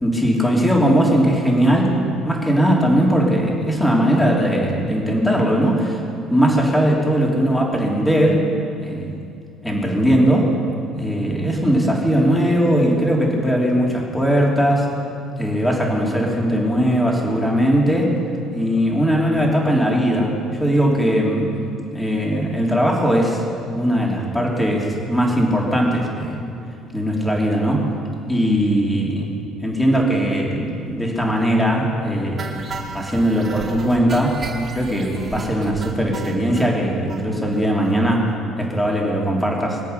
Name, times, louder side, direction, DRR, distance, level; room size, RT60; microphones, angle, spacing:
voice 1, 0.0-2.0 2.2-6.0 6.3-8.5 8.8-9.1 9.6-10.5 10.9-14.9 15.4-18.1 18.5-21.5 21.9-23.4 23.7-26.4 26.9-27.9 28.3-29.3 29.6-32.6 32.9-34.5 34.7-39.8, equal, 5° left, -2 dB, 3.2 m, -19 dB
sound 1, 32.4-36.7 37.1-37.2 37.5-37.6 37.8-38.0 38.3-38.4, right 3 dB, 30° right, 2.2 m, -34 dB
24.5 x 8.4 x 6.7 m, 2.5 s
cardioid pair, 120°, 0 cm